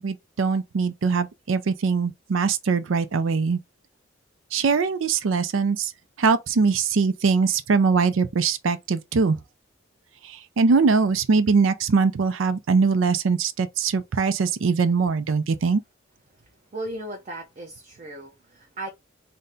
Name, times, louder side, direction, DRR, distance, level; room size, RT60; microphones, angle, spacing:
voice 1, 0.0-3.6 4.5-5.9 6.2-9.4 10.6-15.8, right 4 dB, 80° right, 0.5 m, -22 dB
voice 2, 16.7-18.9, right 1 dB, 40° right, 0.7 m, -36 dB
4.0 x 2.2 x 3.6 m
head